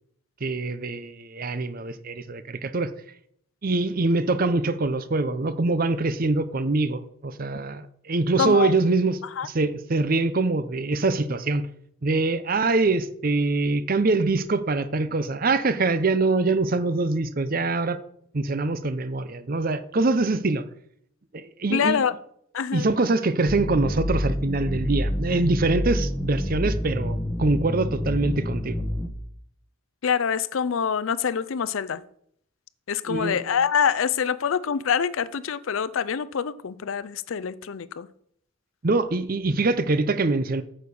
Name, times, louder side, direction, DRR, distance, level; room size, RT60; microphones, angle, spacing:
voice 1, 0.4-2.9 3.6-9.2 9.4-11.7 12.0-18.0 18.3-20.6 21.3-22.0 22.7-28.8 33.1-33.4 38.8-40.6, right 3 dB, 45° right, 0.6 m, -24 dB
voice 2, 8.4-8.8 9.4-9.5 21.7-22.1 22.5-22.9 30.0-32.0 32.9-38.1, left 7 dB, 75° left, 0.5 m, -25 dB
sound 1, 23.5-29.1, equal, 10° left, 1.0 m, -28 dB
9.0 x 6.6 x 5.3 m
head